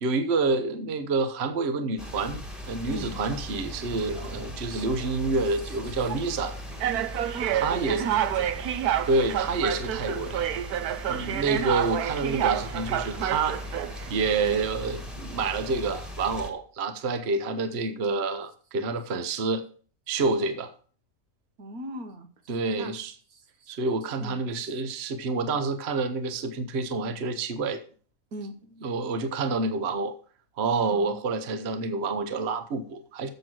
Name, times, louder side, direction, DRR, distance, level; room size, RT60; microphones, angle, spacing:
voice 1, 0.0-6.6 7.5-8.0 9.1-10.4 11.1-13.6 14.1-19.7 20.1-20.7 22.5-23.1 23.7-27.8 28.8-30.1 30.6-33.3, right 3 dB, 50° right, 8 dB, 1.1 m, -28 dB
sound 1, 2.0-16.5, left 1 dB, ahead, 1.5 m, -39 dB
voice 2, 2.9-3.2 4.7-5.2 5.6-5.9 7.3-8.7 21.6-23.0 23.3-23.7 24.2-24.7 28.3-28.5 30.9-31.2, right 2 dB, 70° right, 7 dB, 1.7 m, -40 dB
sound 2, 3.8-4.3 5.1-5.3 6.1-6.2 6.8-14.1, right 11 dB, 85° right, 1.2 m, -29 dB
7.7 x 6.1 x 7.7 m, 0.42 s
omnidirectional pair, 1.6 m